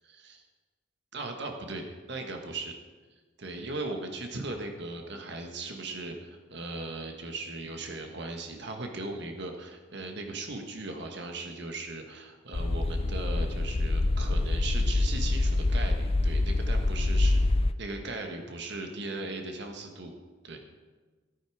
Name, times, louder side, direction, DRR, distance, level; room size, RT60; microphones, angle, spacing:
voice 1, 0.0-0.4 1.1-2.7 3.4-17.4 17.8-20.1 20.4-20.6, right 2 dB, 60° right, 3 dB, 1.6 m, -38 dB
sound 1, 12.5-17.7, left 2 dB, 30° left, 0.4 m, -26 dB
14.0 x 10.5 x 5.0 m, 1.3 s
head